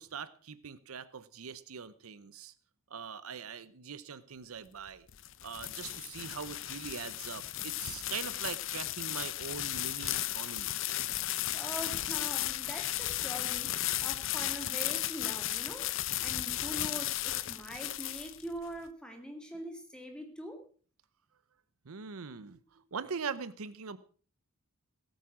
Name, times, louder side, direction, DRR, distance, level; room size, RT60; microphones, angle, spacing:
voice 1, 0.0-2.5 2.9-5.1 5.4-10.7 21.9-24.0, right 6 dB, 80° right, 15 dB, 0.7 m, -42 dB
sound 1, 4.9-18.7, left 14 dB, 60° left, 0.6 m, -35 dB
voice 2, 11.5-20.6, equal, 5° left, 4 dB, 2.2 m, -43 dB
17.0 x 9.1 x 6.1 m, 0.42 s
head